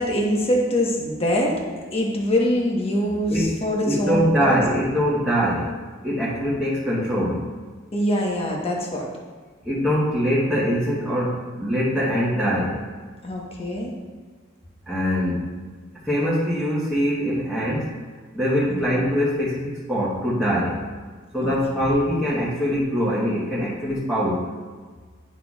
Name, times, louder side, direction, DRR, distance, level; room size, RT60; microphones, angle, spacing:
voice 1, 0.0-1.6 1.9-4.6 7.9-9.1 13.2-13.9 18.7-18.9 21.4-21.5 21.8-21.9, equal, 30° left, -1 dB, 1.2 m, -24 dB
voice 2, 3.8-5.7 6.0-7.5 9.6-12.8 14.9-15.5 16.0-17.9 18.3-20.8 21.3-24.5, equal, ahead, -9 dB, 1.2 m, -23 dB
9.8 x 5.9 x 2.4 m, 1.5 s
head